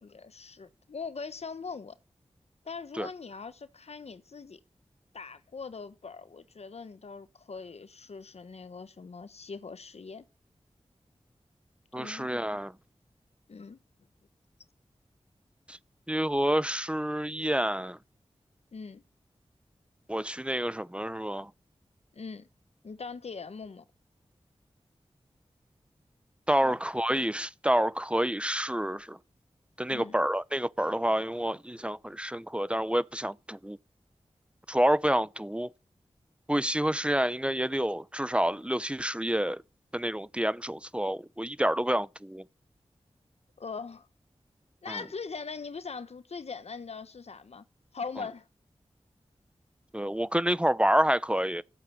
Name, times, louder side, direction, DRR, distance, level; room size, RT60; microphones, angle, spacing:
voice 1, 0.0-2.0 2.6-4.6 5.1-10.3 11.9-12.3 13.5-13.8 18.7-19.0 22.1-22.5 22.8-23.8 29.9-30.2 43.6-44.1 44.8-47.7 47.9-48.5, left 5 dB, 75° left, 1.2 m, -41 dB
voice 2, 11.9-12.7 15.7-15.8 16.1-18.0 20.1-21.5 26.5-29.2 29.8-33.8 34.7-35.7 36.5-39.6 39.9-42.4 44.9-45.0 49.9-51.6, right 1 dB, 10° right, 0.7 m, -28 dB
15.0 x 8.7 x 8.6 m
wide cardioid pair, 75°, 11 cm